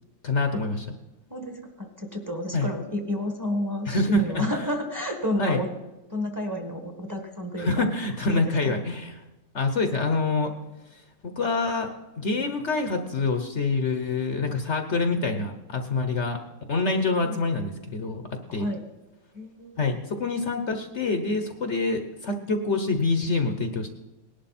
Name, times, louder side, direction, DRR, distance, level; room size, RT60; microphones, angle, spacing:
voice 1, 0.2-0.9 2.5-2.7 3.9-4.4 5.4-5.6 7.6-9.1 9.5-10.5 10.9-16.4 16.7-18.2 18.5-18.7 19.8-23.9, left 3 dB, 55° left, 6 dB, 1.2 m, -26 dB
voice 2, 1.3-5.7 6.1-7.8 8.3-8.7 16.9-17.4 18.5-18.8 19.3-19.8, left 1 dB, 10° right, 3 dB, 1.6 m, -31 dB
18.5 x 11.5 x 4.3 m, 1.0 s
omnidirectional pair, 1.6 m